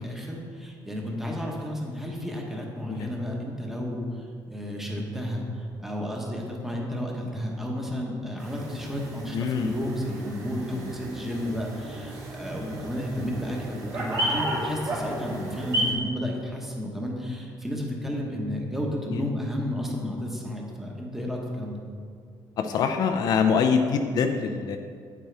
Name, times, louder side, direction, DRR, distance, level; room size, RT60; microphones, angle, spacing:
voice 1, 0.0-21.8, left 1 dB, 5° right, -1 dB, 1.1 m, -32 dB
sound 1, 8.4-15.9, right 1 dB, 50° right, 2.2 m, -33 dB
voice 2, 9.3-9.7 19.1-19.2 22.6-24.8, left 6 dB, 55° left, 5 dB, 0.5 m, -24 dB
9.0 x 8.8 x 3.4 m, 2.1 s
cardioid pair, 170°, 8 cm